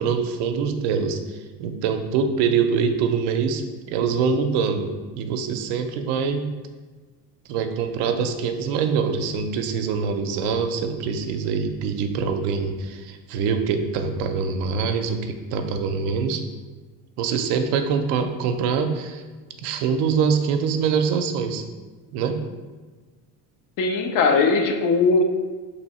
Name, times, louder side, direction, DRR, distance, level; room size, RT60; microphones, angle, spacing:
voice 1, 0.0-6.5 7.5-16.4 17.2-19.2 19.6-21.6 22.1-22.4, right 6 dB, 80° right, 6 dB, 0.6 m, -24 dB
voice 2, 23.8-25.2, left 4 dB, 60° left, 5 dB, 0.6 m, -19 dB
3.1 x 2.7 x 4.1 m, 1.4 s
cardioid pair, 120°, 39 cm